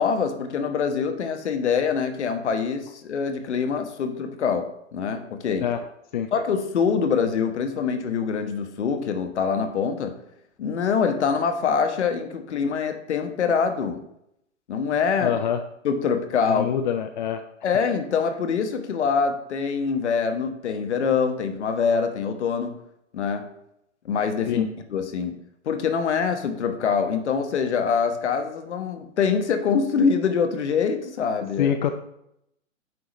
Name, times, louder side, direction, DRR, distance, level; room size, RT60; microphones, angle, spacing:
voice 1, 0.0-4.6 4.9-5.7 6.3-10.1 10.6-14.0 14.7-15.3 15.8-16.7 17.6-22.8 23.1-23.5 24.0-24.6 24.9-25.4 25.7-31.8, left 6 dB, 60° left, 6 dB, 1.2 m, -24 dB
voice 2, 15.2-15.6 16.5-17.4 24.5-24.7 31.6-31.9, left 9 dB, 40° left, 8 dB, 0.5 m, -25 dB
9.5 x 5.8 x 3.2 m, 0.78 s
figure-of-eight pair, 120°, 38 cm